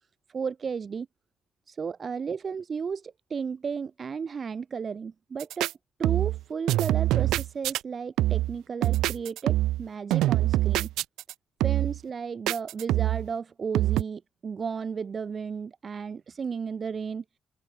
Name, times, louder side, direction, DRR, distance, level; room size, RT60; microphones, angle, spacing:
voice 1, 0.3-1.1 1.7-5.7 6.0-10.9 11.6-17.2, right 6 dB, 45° right, 2.2 m, -34 dB
sound 1, 5.4-5.7 6.0-6.4 6.7-7.8 8.2-8.6 8.8-9.8 10.1-11.3 11.6-12.0 12.5-13.3 13.8-14.0, right 15 dB, 90° right, 0.6 m, -24 dB
open air
cardioid pair, 90°, 0 cm